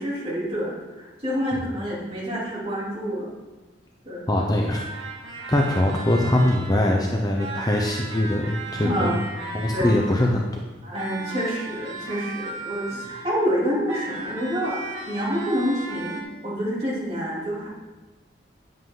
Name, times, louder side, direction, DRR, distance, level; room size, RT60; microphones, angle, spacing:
voice 1, 0.0-3.3 4.0-4.2 8.7-9.2 9.7-9.9 10.8-17.7, equal, 30° right, -7 dB, 3.1 m, -27 dB
voice 2, 4.3-4.8 5.5-9.2 9.5-10.5, left 1 dB, 20° left, 0 dB, 0.7 m, -22 dB
sound 1, 4.7-6.9 7.4-10.4 10.9-13.4 13.9-16.2, right 3 dB, 90° right, 1.7 m, -36 dB
9.5 x 7.8 x 3.8 m, 1.2 s
head